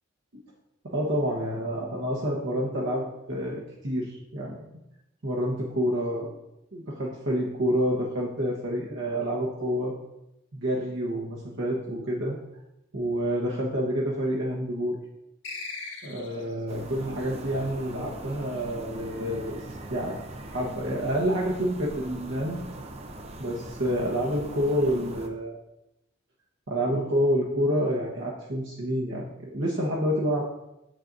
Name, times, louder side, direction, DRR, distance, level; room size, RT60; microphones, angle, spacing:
voice 1, 0.8-4.6 5.2-6.3 6.7-9.9 10.5-12.4 12.9-15.0 16.0-19.6 19.9-22.6 23.4-25.6 26.7-30.5, equal, 65° right, -4 dB, 1.1 m, -28 dB
sound 1, 15.4-16.6, left 4 dB, 65° left, 1.6 m, -38 dB
sound 2, 16.7-25.3, right 1 dB, 30° right, 0.6 m, -41 dB
7.2 x 6.6 x 2.6 m, 0.85 s
head